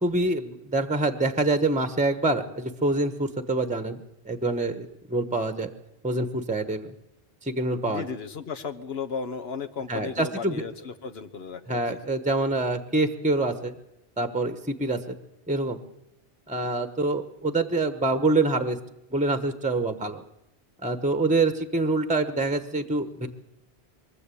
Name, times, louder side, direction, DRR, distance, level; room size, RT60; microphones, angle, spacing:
voice 1, 0.0-4.0 4.3-5.7 6.0-6.9 7.4-8.0 9.9-10.6 11.7-13.7 14.2-15.2 15.5-15.8 16.5-18.8 19.1-20.2 20.8-23.3, right 2 dB, 10° right, 9 dB, 0.9 m, -26 dB
voice 2, 7.9-12.0, left 5 dB, 75° left, 11 dB, 1.4 m, -35 dB
23.5 x 13.5 x 8.4 m, 0.91 s
omnidirectional pair, 1.1 m